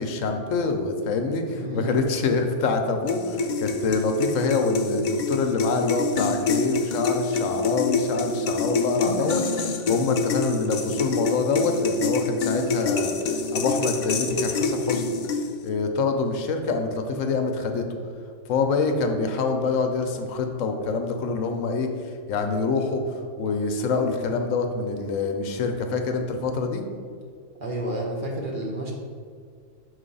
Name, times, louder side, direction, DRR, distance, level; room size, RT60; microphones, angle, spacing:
voice 1, 0.0-9.4 9.9-13.1 13.5-15.2 15.6-17.9 18.5-21.9 22.3-23.0 23.4-26.8, left 4 dB, 85° left, 5 dB, 1.0 m, -25 dB
voice 2, 1.5-2.0 8.9-9.7 27.6-28.9, right 1 dB, 45° right, -2 dB, 1.0 m, -31 dB
sound 1, 3.1-15.7, left 3 dB, 70° left, 0.4 m, -26 dB
5.8 x 3.2 x 5.4 m, 2.1 s
omnidirectional pair, 1.3 m